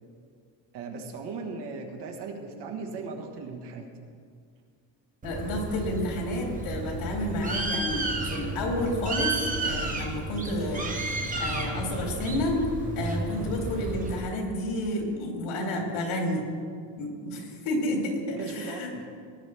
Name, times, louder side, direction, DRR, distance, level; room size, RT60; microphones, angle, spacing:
voice 1, 0.7-3.9 18.4-19.1, right 4 dB, 60° right, 2 dB, 1.7 m, -38 dB
voice 2, 5.2-12.7 13.0-16.4 17.0-18.9, left 1 dB, 85° left, -1 dB, 3.2 m, -30 dB
Bird, 5.2-14.2, right 2 dB, 15° right, 1.1 m, -32 dB
19.0 x 10.5 x 3.5 m, 2.2 s
cardioid pair, 165°, 46 cm